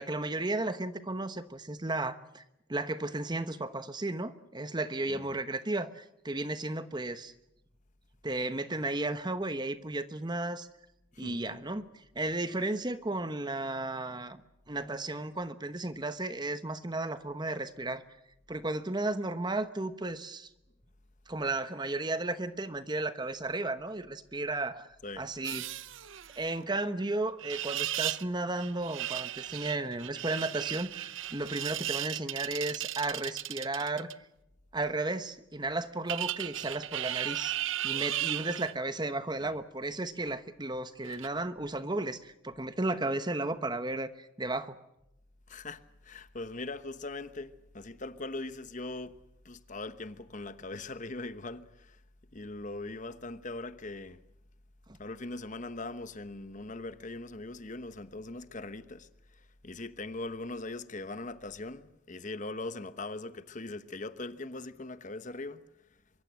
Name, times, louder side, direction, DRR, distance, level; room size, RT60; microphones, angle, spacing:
voice 1, 0.0-2.4 2.7-7.3 8.2-10.7 11.2-14.4 14.7-18.0 18.5-20.5 21.3-24.9 25.2-25.6 26.4-34.1 34.7-44.8 54.9-55.0, right 2 dB, 20° right, 1.1 m, -34 dB
voice 2, 5.1-5.4 11.1-11.4 25.0-25.3 39.4-39.6 45.5-49.2 49.4-52.0 52.3-54.2 55.0-65.6, left 2 dB, 40° left, 1.1 m, -41 dB
sound 1, 25.4-26.5 27.4-28.3 28.6-34.1 36.1-38.7 41.1-41.3, right 13 dB, 70° right, 0.8 m, -36 dB
25.0 x 23.5 x 7.6 m
head